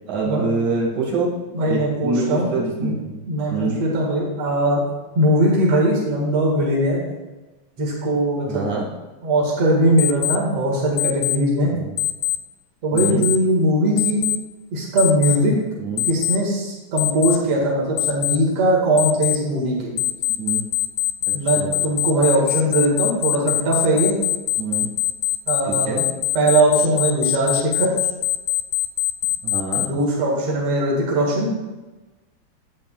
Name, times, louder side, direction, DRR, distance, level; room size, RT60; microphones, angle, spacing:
voice 1, 0.1-1.3 1.7-3.2 3.5-3.8 8.5-8.8 11.7-11.9 12.9-13.2 15.8-16.0 20.3-20.7 21.5-21.8 24.6-24.9 25.7-26.0 29.4-29.9, right 3 dB, 75° right, -5 dB, 3.3 m, -25 dB
voice 2, 1.5-2.5 2.8-3.0 3.3-4.8 5.1-7.0 7.8-8.6 9.2-11.7 12.8-14.2 14.7-15.6 16.0-19.9 21.3-24.2 25.5-26.1 26.3-27.9 29.7-31.5, right 1 dB, 50° right, -3 dB, 2.8 m, -20 dB
Alarm, 10.0-10.4 11.0-11.4 12.0-12.4 13.0-13.4 14.0-14.4 15.0-15.4 16.0-16.4 17.0-17.4 18.0-18.4 19.0-19.4 20.0-29.9, left 16 dB, 90° left, 2.1 m, -22 dB
12.0 x 8.4 x 2.4 m, 1.2 s
omnidirectional pair, 3.4 m